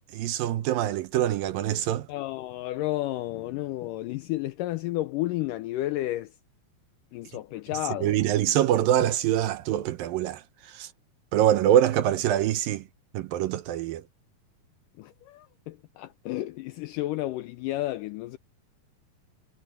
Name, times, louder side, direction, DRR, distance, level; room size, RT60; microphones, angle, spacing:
voice 1, 0.1-2.1 8.0-10.4 10.7-10.9 11.3-12.8 13.1-14.0, right 11 dB, 75° right, 2.4 m, -24 dB
voice 2, 2.1-6.4 7.1-8.2 15.0-18.4, left 16 dB, 85° left, 1.9 m, -32 dB
omnidirectional pair, 4.4 m